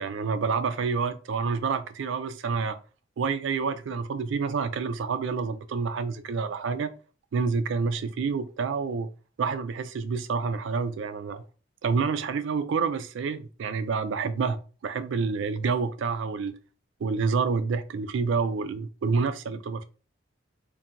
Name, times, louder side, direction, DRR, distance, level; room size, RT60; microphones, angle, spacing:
voice 1, 0.0-2.8 3.2-6.9 7.3-9.1 9.4-11.4 11.8-16.6 17.0-19.9, right 5 dB, 70° right, 0.3 m, -28 dB
2.4 x 2.2 x 2.8 m
head